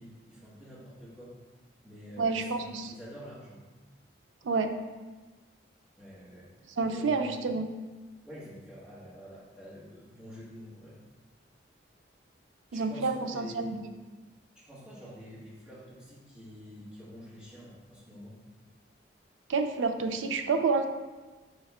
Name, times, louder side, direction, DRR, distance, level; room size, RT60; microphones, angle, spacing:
voice 1, 0.0-1.4 1.8-3.6 6.0-6.5 6.8-7.4 8.2-10.9 12.7-13.8 14.5-18.3, equal, 5° right, -10 dB, 1.4 m, -47 dB
voice 2, 2.2-2.9 4.4-4.8 6.8-7.7 12.7-13.8 19.5-20.9, right 4 dB, 90° right, 7 dB, 0.4 m, -29 dB
4.5 x 3.4 x 3.4 m, 1.3 s
head